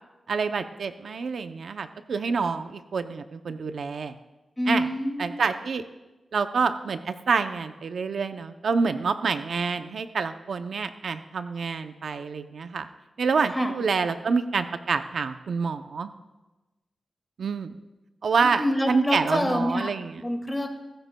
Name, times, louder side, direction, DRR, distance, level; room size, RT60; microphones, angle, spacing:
voice 1, 0.3-4.2 4.7-4.9 5.2-5.8 6.3-12.9 13.2-16.1 17.4-17.8 18.2-20.2, right 5 dB, 70° right, 9 dB, 0.5 m, -27 dB
voice 2, 4.6-5.4 13.5-13.7 18.4-19.9 20.2-20.7, left 1 dB, 10° left, 3 dB, 2.2 m, -26 dB
24.0 x 13.0 x 2.2 m, 1.1 s
wide cardioid pair, 100°, 0 cm